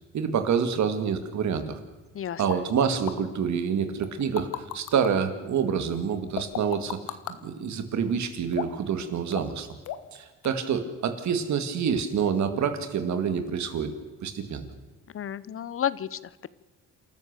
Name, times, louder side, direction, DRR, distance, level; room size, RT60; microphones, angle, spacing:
voice 1, 0.1-1.8 2.4-7.0 7.4-9.7 10.1-13.9 14.2-14.7, right 7 dB, 65° right, 9 dB, 2.3 m, -27 dB
sound 1, 2.5-2.6 3.1-3.2 4.0-5.1 6.4-7.4 8.5-8.9 9.3-9.6 9.9-10.2 10.4-10.5, left 12 dB, 85° left, 1.4 m, -34 dB
voice 2, 15.1-16.5, left 9 dB, 45° left, 19 dB, 0.8 m, -31 dB
28.5 x 13.5 x 6.8 m, 1.2 s
cardioid pair, 90°, 30 cm